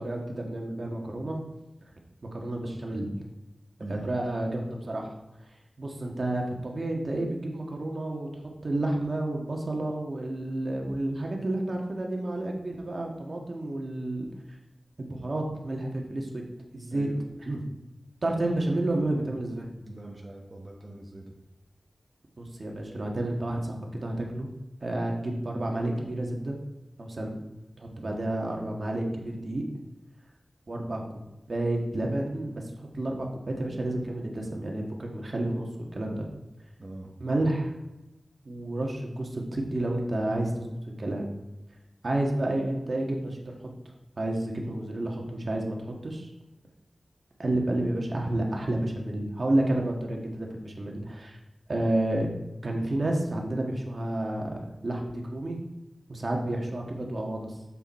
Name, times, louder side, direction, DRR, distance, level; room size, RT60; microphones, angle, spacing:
voice 1, 0.0-1.4 2.3-3.1 3.9-5.1 5.8-8.3 8.6-14.3 15.0-16.4 16.7-17.1 17.4-17.6 18.2-19.7 22.4-24.5 24.8-26.6 27.0-27.4 27.8-29.6 30.7-31.0 31.5-32.6 32.9-36.2 37.2-37.7 38.4-40.7 41.0-41.3 42.0-43.5 44.2-46.3 47.4-51.4 51.7-52.3 52.6-55.6 56.1-57.5, right 1 dB, 60° right, 1 dB, 1.5 m, -30 dB
voice 2, 16.9-17.2 19.8-21.3 27.9-28.2 36.8-37.1 37.4-37.5, right 2 dB, 35° right, -1 dB, 1.2 m, -42 dB
7.3 x 6.9 x 4.3 m, 0.95 s
wide cardioid pair, 65°, 0 cm